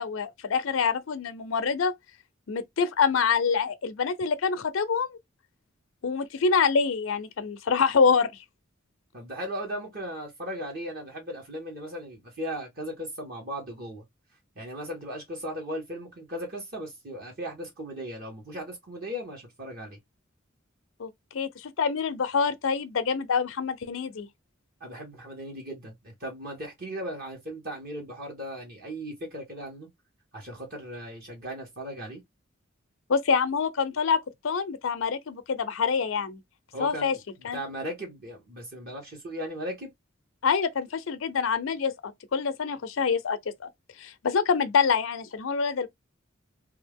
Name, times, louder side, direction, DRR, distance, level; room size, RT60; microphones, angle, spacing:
voice 1, 0.0-1.9 2.5-5.2 6.0-8.4 21.0-24.3 33.1-36.4 36.8-37.2 37.4-37.6 40.4-43.7 44.0-45.9, left 5 dB, 75° left, 0.5 m, -26 dB
voice 2, 9.1-14.0 14.5-20.0 24.8-29.9 30.3-32.2 36.7-39.9, equal, 50° right, 1.4 m, -37 dB
2.7 x 2.4 x 3.5 m
head